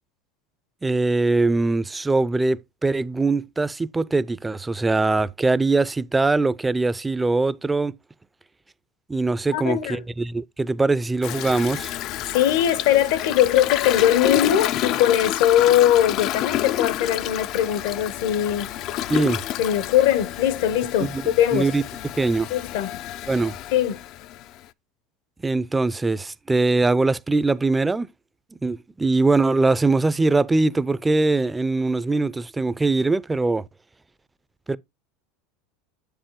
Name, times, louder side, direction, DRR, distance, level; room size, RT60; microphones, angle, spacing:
voice 1, 0.8-7.9 9.1-11.9 19.1-19.5 21.1-21.2 21.5-21.8 22.1-22.5 23.3-23.5 25.4-28.1 28.6-33.7 34.7-34.8, right 3 dB, 15° right, 0.4 m, -22 dB
voice 2, 9.5-10.0 12.3-18.8 19.6-21.7 22.5-22.9 23.7-24.0, left 11 dB, 70° left, 0.9 m, -20 dB
Toilet flush, 11.2-24.6, left 13 dB, 55° left, 0.4 m, -29 dB
7.3 x 6.7 x 3.0 m
hypercardioid pair, 100°, 0 cm